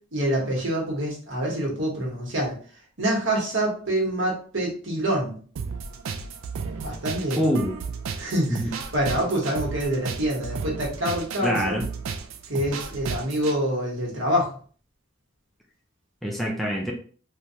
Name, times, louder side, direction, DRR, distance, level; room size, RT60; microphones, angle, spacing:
voice 1, 0.1-2.5 3.0-5.4 6.8-7.4 8.2-11.9 12.5-14.5, right 1 dB, 65° right, -2 dB, 1.1 m, -26 dB
sound 1, 5.6-13.6, right 5 dB, 85° right, 0.4 m, -34 dB
voice 2, 7.4-7.8 8.5-8.7 11.4-11.9 16.2-16.9, equal, ahead, -2 dB, 0.4 m, -25 dB
3.2 x 2.3 x 2.7 m, 0.43 s
head